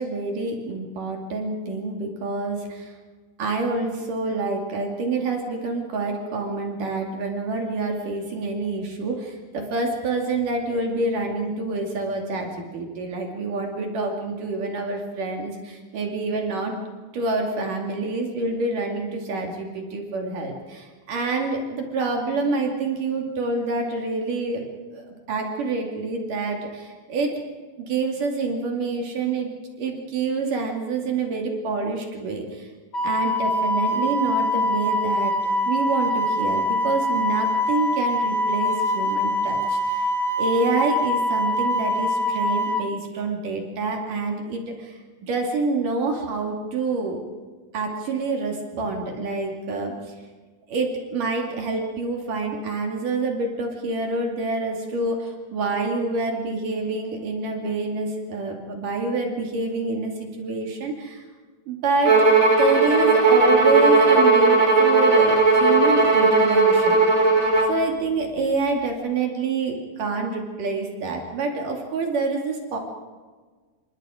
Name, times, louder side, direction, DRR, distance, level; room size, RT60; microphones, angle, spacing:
voice 1, 0.0-2.9 3.4-16.8 17.1-24.7 24.9-27.3 27.8-29.5 29.8-32.7 33.0-35.3 35.7-40.1 40.4-47.2 47.7-49.9 50.7-61.2 61.7-62.2 62.6-67.2 67.7-72.8, right 3 dB, 65° right, 1 dB, 4.1 m, -27 dB
Wind instrument woodwind instrument, 32.9-42.8, left 1 dB, 75° left, 0.7 m, -24 dB
Bowed string instrument, 62.0-67.8, right 3 dB, 25° right, 3.6 m, -17 dB
29.0 x 25.0 x 5.1 m, 1.4 s
omnidirectional pair, 4.1 m